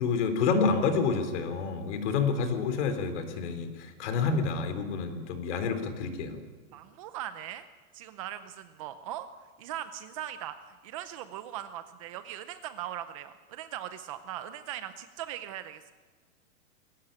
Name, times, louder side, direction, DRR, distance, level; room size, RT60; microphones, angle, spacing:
voice 1, 0.0-6.4, left 5 dB, 55° left, 8 dB, 3.9 m, -28 dB
voice 2, 6.7-7.7 7.9-9.3 9.6-15.9, right 12 dB, 25° right, 11 dB, 0.6 m, -40 dB
22.0 x 17.5 x 8.9 m, 1.5 s
supercardioid pair, 165°, 42 cm